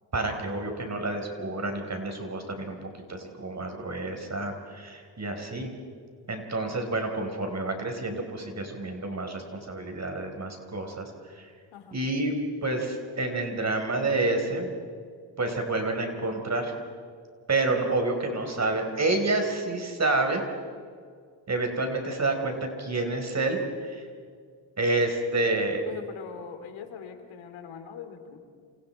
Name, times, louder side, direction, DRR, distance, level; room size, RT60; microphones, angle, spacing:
voice 1, 0.1-2.8 3.1-5.7 6.3-11.5 11.9-12.3 12.6-14.7 15.4-16.7 17.5-20.4 21.5-24.0 24.8-25.8, right 2 dB, 35° right, 4 dB, 4.5 m, -29 dB
voice 2, 25.9-28.4, left 7 dB, 90° left, 7 dB, 3.0 m, -42 dB
29.0 x 28.0 x 4.5 m, 2.1 s
cardioid pair, 80°, 46 cm